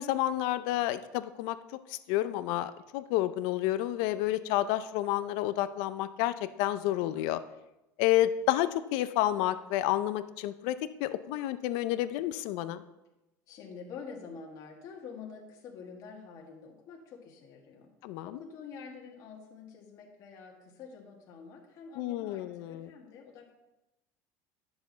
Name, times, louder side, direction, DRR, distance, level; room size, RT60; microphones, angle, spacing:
voice 1, 0.0-1.6 1.9-7.4 8.0-12.8 18.0-18.4 22.0-22.9, left 14 dB, 70° left, 13 dB, 0.5 m, -30 dB
voice 2, 13.5-17.9 18.2-23.5, left 5 dB, 50° left, 0 dB, 1.7 m, -47 dB
10.5 x 7.0 x 4.0 m, 0.96 s
cardioid pair, 150°, 8 cm